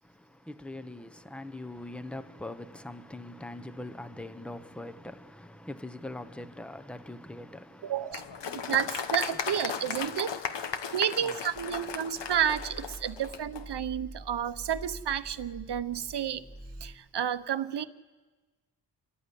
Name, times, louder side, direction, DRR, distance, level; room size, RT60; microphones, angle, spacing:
voice 1, 0.0-8.8 10.7-10.9 11.2-11.4 12.1-12.3, left 1 dB, 5° left, 0.8 m, -43 dB
voice 2, 7.8-8.2 8.5-10.3 10.9-16.4 16.8-17.8, right 9 dB, 65° right, 0.9 m, -31 dB
Applause, 8.1-13.6, left 7 dB, 70° left, 1.2 m, -36 dB
sound 1, 11.5-16.9, right 1 dB, 25° left, 4.3 m, -46 dB
27.5 x 14.5 x 9.9 m
wide cardioid pair, 155°, 44 cm